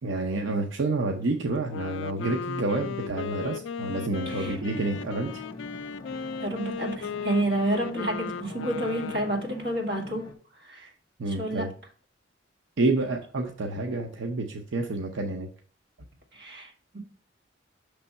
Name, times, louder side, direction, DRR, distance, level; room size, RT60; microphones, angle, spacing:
voice 1, 0.0-5.4 10.7-10.9 11.2-11.7 12.8-15.5, right 2 dB, 85° right, 2 dB, 0.7 m, -29 dB
Wind instrument woodwind instrument, 1.6-9.5, left 6 dB, 80° left, 0.3 m, -36 dB
sound 1, 4.3-10.3, left 2 dB, 25° left, 0.9 m, -44 dB
voice 2, 4.3-4.6 6.4-10.2 10.6-10.9 11.3-11.7 16.3-17.0, right 1 dB, 60° right, 0 dB, 1.8 m, -30 dB
6.1 x 3.4 x 5.4 m, 0.42 s
head